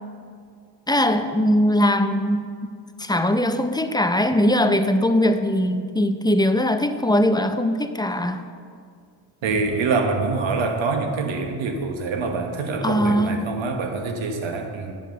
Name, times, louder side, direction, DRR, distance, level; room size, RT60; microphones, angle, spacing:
voice 1, 0.9-2.5 3.0-8.4 12.8-13.5, left 1 dB, 10° left, 8 dB, 0.5 m, -20 dB
voice 2, 9.4-15.0, right 4 dB, 80° right, 5 dB, 1.2 m, -25 dB
10.0 x 5.3 x 6.8 m, 2.2 s
cardioid pair, 75°, 46 cm